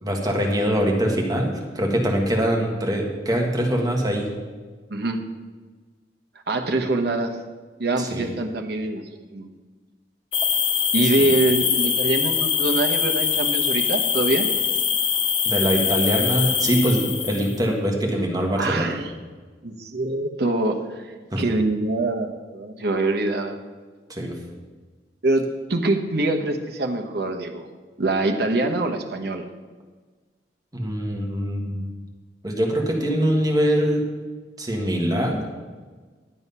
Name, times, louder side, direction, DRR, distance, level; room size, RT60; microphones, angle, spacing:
voice 1, 0.0-4.3 8.0-8.3 11.2-11.3 15.5-18.9 21.3-21.4 24.1-24.4 30.7-31.8 32.4-34.1 34.6-35.4, equal, 20° right, 0 dB, 1.6 m, -23 dB
voice 2, 4.9-5.2 6.5-7.3 7.8-9.0 9.3-9.5 10.9-14.5 18.5-19.1 19.6-21.0 21.4-23.6 25.2-27.7 28.0-29.5, right 2 dB, 65° right, 4 dB, 1.0 m, -24 dB
sound 1, 10.3-17.6, left 7 dB, 30° left, 0.7 m, -23 dB
11.0 x 7.9 x 5.5 m, 1.4 s
head